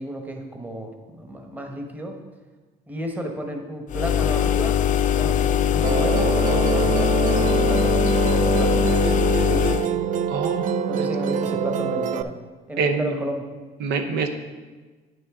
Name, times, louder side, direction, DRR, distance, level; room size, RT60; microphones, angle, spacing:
voice 1, 0.0-2.2 2.9-4.9 5.2-8.9 9.4-9.8 10.9-12.4 12.7-13.5, right 1 dB, 10° right, 3 dB, 1.1 m, -32 dB
sound 1, 3.9-9.9, left 9 dB, 50° left, 0.4 m, -21 dB
Musical instrument, 5.8-12.2, right 8 dB, 50° right, 0.4 m, -24 dB
voice 2, 10.3-11.1 12.8-13.2 13.8-14.3, right 5 dB, 80° right, 6 dB, 0.7 m, -26 dB
9.1 x 6.2 x 3.6 m, 1.3 s
cardioid pair, 110°, 17 cm